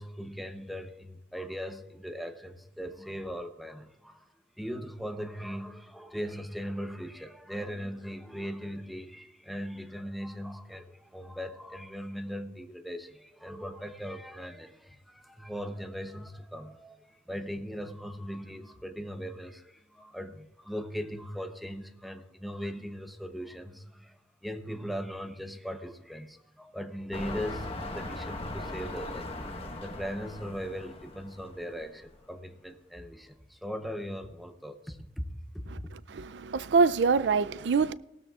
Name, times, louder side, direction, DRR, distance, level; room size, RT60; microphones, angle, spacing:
voice 1, 0.0-4.2 4.6-29.3 29.8-35.2 35.5-35.9, equal, ahead, 0.8 m, -39 dB
sound 1, 27.1-32.1 32.7-32.8, left 2 dB, 35° left, 1.2 m, -39 dB
voice 2, 35.7-37.9, right 5 dB, 80° right, 0.4 m, -25 dB
18.5 x 13.0 x 2.4 m
head